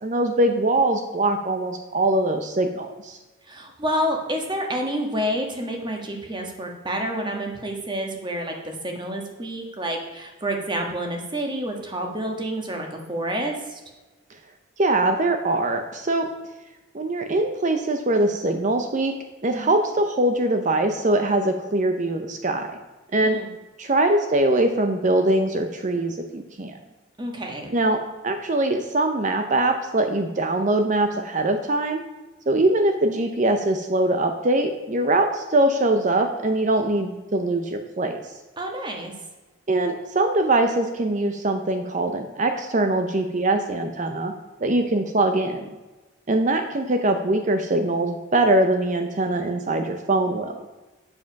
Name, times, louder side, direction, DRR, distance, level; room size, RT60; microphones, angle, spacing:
voice 1, 0.0-3.2 14.8-16.3 16.9-22.8 23.1-23.4 23.8-26.8 27.7-32.0 32.5-38.2 39.7-44.3 44.6-45.7 46.3-50.6, right 2 dB, 40° right, 6 dB, 0.6 m, -22 dB
voice 2, 3.4-13.8 19.5-19.8 23.2-23.5 27.2-27.7 38.6-39.1, equal, 25° right, 2 dB, 1.4 m, -29 dB
7.9 x 7.4 x 5.8 m, 1.2 s
head